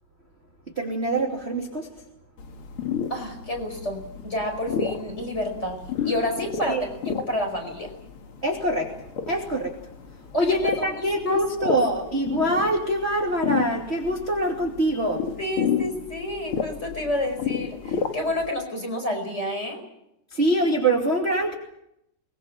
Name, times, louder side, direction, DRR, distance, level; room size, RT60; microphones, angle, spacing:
voice 1, 0.8-1.9 6.7-6.8 8.4-8.9 9.3-9.7 10.3-15.2 20.3-21.5, right 1 dB, 20° right, 0 dB, 2.6 m, -24 dB
sound 1, 2.4-18.5, left 7 dB, 50° left, 2.1 m, -32 dB
voice 2, 3.1-7.9 10.3-11.8 15.4-19.8, left 1 dB, 20° left, 3 dB, 5.3 m, -30 dB
23.5 x 21.5 x 7.5 m, 0.80 s
omnidirectional pair, 3.9 m